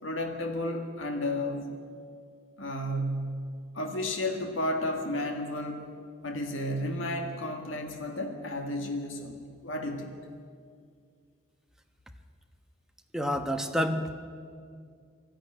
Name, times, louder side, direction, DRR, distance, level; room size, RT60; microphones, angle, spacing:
voice 1, 0.0-1.7 2.6-3.3 3.7-5.9 6.2-10.1, left 1 dB, 70° left, 4 dB, 1.8 m, -32 dB
voice 2, 13.1-14.1, equal, 5° right, 5 dB, 1.0 m, -28 dB
19.0 x 13.5 x 9.9 m, 2.2 s
head